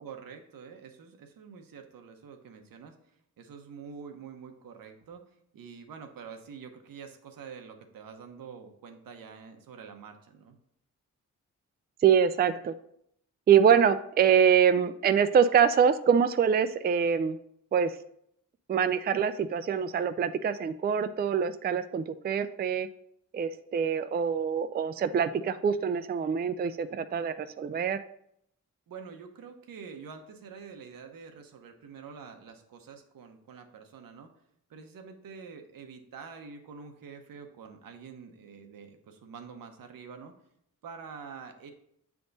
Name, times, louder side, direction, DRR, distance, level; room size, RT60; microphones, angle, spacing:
voice 1, 0.0-3.0 3.4-5.2 5.5-10.6 28.9-34.3 34.7-40.3 40.8-41.7, right 6 dB, 85° right, 6 dB, 0.9 m, -46 dB
voice 2, 12.0-12.7 13.5-17.4 17.7-18.0 18.7-22.9 23.3-28.0, right 7 dB, 30° right, 11 dB, 0.4 m, -24 dB
7.7 x 3.6 x 4.0 m, 0.71 s
cardioid pair, 65°, 33 cm